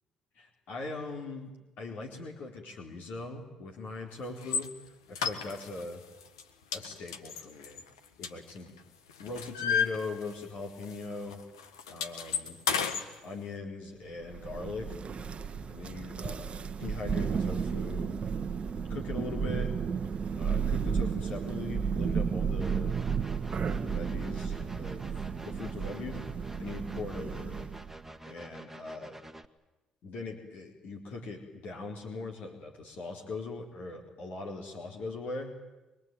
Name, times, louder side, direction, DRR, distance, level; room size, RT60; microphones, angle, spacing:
voice 1, 0.4-1.5 1.8-4.7 5.1-6.0 6.7-7.8 8.2-8.7 9.2-11.4 11.9-12.6 13.2-14.9 15.7-18.2 18.9-19.7 20.4-23.0 23.7-25.1 25.4-26.2 26.6-27.6 28.3-29.1 30.0-35.5, left 3 dB, 65° left, 0 dB, 4.2 m, -40 dB
sound 1, 4.4-4.7 5.1-5.9 6.2-6.4 6.7-8.8 9.1-10.6 10.8-11.0 11.3-13.1, left 7 dB, 90° left, 1.5 m, -32 dB
Thunder, 14.3-27.9, right 6 dB, 45° right, 1.3 m, -33 dB
sound 2, 22.6-29.4, right 1 dB, 10° right, 1.8 m, -48 dB
24.5 x 22.0 x 9.3 m, 1.1 s
hypercardioid pair, 50°, 3 cm